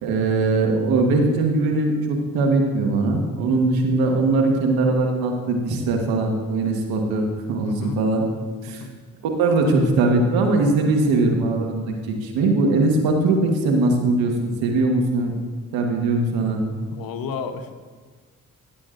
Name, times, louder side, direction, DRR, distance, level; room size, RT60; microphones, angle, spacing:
voice 1, 0.0-8.2 8.6-8.8 9.2-15.3 15.7-16.6, right 2 dB, 85° right, 2 dB, 1.4 m, -21 dB
voice 2, 7.6-8.0 8.7-8.9 16.9-17.8, left 6 dB, 75° left, 8 dB, 1.0 m, -32 dB
16.0 x 8.3 x 2.5 m, 1.5 s
hypercardioid pair, 45°, 36 cm